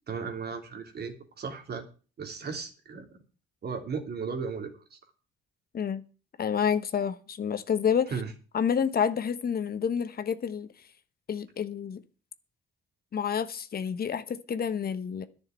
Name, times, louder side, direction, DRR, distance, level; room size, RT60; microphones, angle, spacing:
voice 1, 0.1-1.8 2.2-3.1 3.6-5.0 8.1-8.3, right 5 dB, 55° right, 3.1 m, -36 dB
voice 2, 6.4-8.1 8.5-10.7 11.3-12.0 13.1-15.2, left 7 dB, 50° left, 1.2 m, -29 dB
11.0 x 6.6 x 9.2 m
cardioid pair, 90°, 20 cm